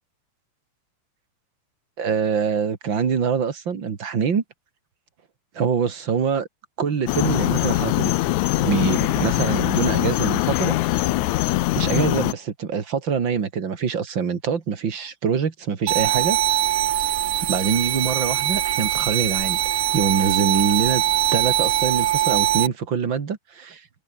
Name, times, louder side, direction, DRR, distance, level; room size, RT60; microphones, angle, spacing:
voice 1, 2.0-4.4 5.5-6.5 6.8-8.1 8.6-10.8 11.8-16.4 17.4-21.0 21.3-23.8, right 6 dB, 40° right, 2.4 m, -24 dB
sound 1, 7.1-12.3, left 17 dB, 75° left, 1.9 m, -22 dB
sound 2, 15.9-22.7, right 12 dB, 65° right, 1.5 m, -22 dB
omnidirectional pair, 4.0 m